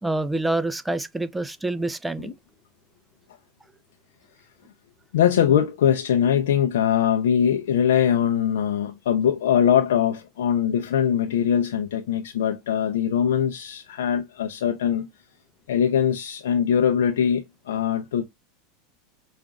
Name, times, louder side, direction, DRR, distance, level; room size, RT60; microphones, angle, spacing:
voice 1, 0.0-2.3, right 2 dB, 5° right, 0.4 m, -27 dB
voice 2, 5.1-15.1 15.7-18.2, left 9 dB, 80° left, 0.5 m, -22 dB
5.0 x 2.4 x 2.3 m
hypercardioid pair, 100°, 0 cm